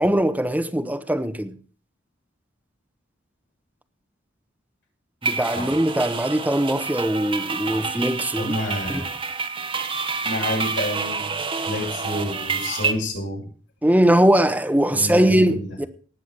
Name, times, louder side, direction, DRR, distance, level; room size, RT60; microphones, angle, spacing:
voice 1, 0.0-1.5 5.2-8.5 8.9-9.0 13.8-15.9, right 1 dB, 10° right, 1.0 m, -21 dB
sound 1, 5.2-12.9, right 4 dB, 25° right, 1.2 m, -28 dB
voice 2, 8.4-9.1 10.2-11.3 11.6-13.4 14.9-15.7, left 1 dB, 70° left, 7.2 m, -29 dB
18.5 x 7.1 x 6.1 m
head